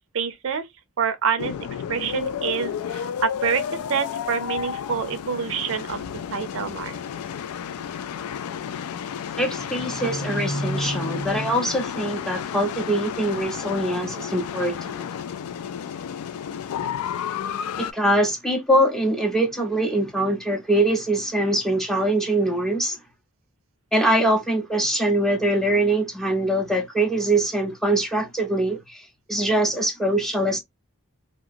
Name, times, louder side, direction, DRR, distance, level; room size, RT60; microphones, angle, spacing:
voice 1, 0.1-0.7 1.0-1.5 1.9-3.6 3.9-6.1 6.3-7.0, right 6 dB, 65° right, 0.5 m, -26 dB
sound 1, 1.4-17.9, left 8 dB, 90° left, 0.3 m, -32 dB
voice 2, 9.4-14.9 17.8-23.0 23.9-29.0 29.3-30.6, right 1 dB, ahead, 0.5 m, -23 dB
2.8 x 2.4 x 2.4 m
head